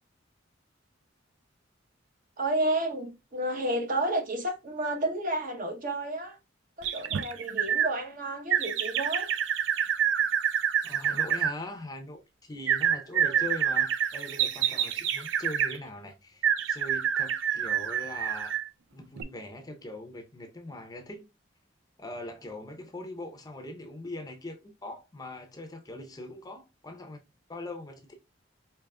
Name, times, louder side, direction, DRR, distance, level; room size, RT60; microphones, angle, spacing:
voice 1, 2.4-6.4 6.8-9.3 13.1-13.4, right 1 dB, 45° right, 0.9 m, -31 dB
sound 1, 6.8-7.9 8.5-11.5 12.7-15.8 16.4-18.7 19.2-19.3, right 9 dB, 70° right, 0.4 m, -27 dB
voice 2, 10.8-18.5 18.9-21.2 22.0-27.2 27.5-28.1, left 1 dB, 20° left, 0.6 m, -41 dB
4.8 x 3.0 x 2.2 m
head